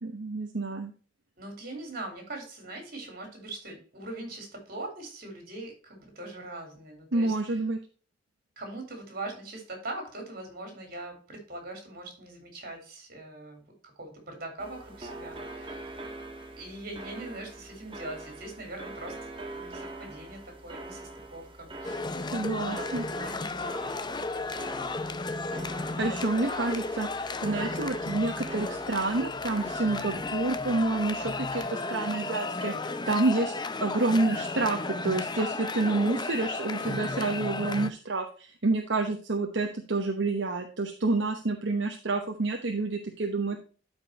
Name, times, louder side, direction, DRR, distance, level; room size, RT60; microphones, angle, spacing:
voice 1, 0.0-0.9 7.1-7.8 22.3-23.0 26.0-33.5 33.8-43.6, right 3 dB, 75° right, 3 dB, 1.1 m, -29 dB
voice 2, 1.4-7.6 8.6-16.0 16.5-19.2 19.5-22.1 22.5-23.6 24.0-25.1, right 2 dB, 50° right, 4 dB, 4.0 m, -42 dB
sound 1, 14.6-31.6, right 2 dB, 30° right, 1.4 m, -44 dB
sound 2, 21.8-37.9, left 3 dB, 25° left, 0.6 m, -34 dB
12.5 x 5.4 x 2.9 m, 0.38 s
head